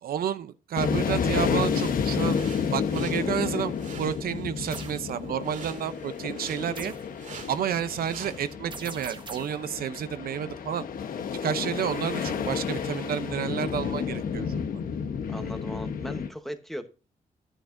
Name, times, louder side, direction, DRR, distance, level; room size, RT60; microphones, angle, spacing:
voice 1, 0.0-2.4 2.7-6.9 7.5-10.8 11.4-14.6, right 9 dB, 85° right, 0.7 m, -30 dB
sound 1, 0.8-16.3, left 6 dB, 70° left, 1.0 m, -31 dB
sound 2, 1.7-8.5, right 5 dB, 60° right, 2.2 m, -47 dB
sound 3, 4.7-5.0 6.8-7.1 8.7-9.6, right 4 dB, 30° right, 1.3 m, -41 dB
voice 2, 15.3-16.9, equal, ahead, 1.1 m, -37 dB
12.0 x 9.8 x 2.6 m
wide cardioid pair, 165°, 15 cm